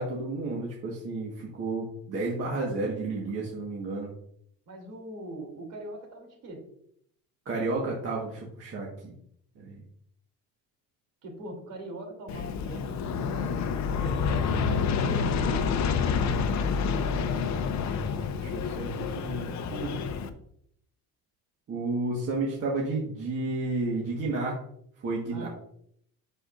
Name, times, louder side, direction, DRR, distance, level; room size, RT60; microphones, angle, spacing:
voice 1, 0.0-4.1 7.4-9.1 9.5-9.8 18.4-20.0 21.7-24.6 25.0-25.5, right 2 dB, 40° right, -3 dB, 1.6 m, -32 dB
voice 2, 4.7-6.6 11.2-13.7 14.0-17.0 17.4-17.7 25.3-25.5, right 1 dB, 60° right, 1 dB, 3.0 m, -41 dB
Aircraft, 12.3-20.3, left 6 dB, 50° left, 0.8 m, -28 dB
8.5 x 6.7 x 2.6 m, 0.69 s
cardioid pair, 145°, 35 cm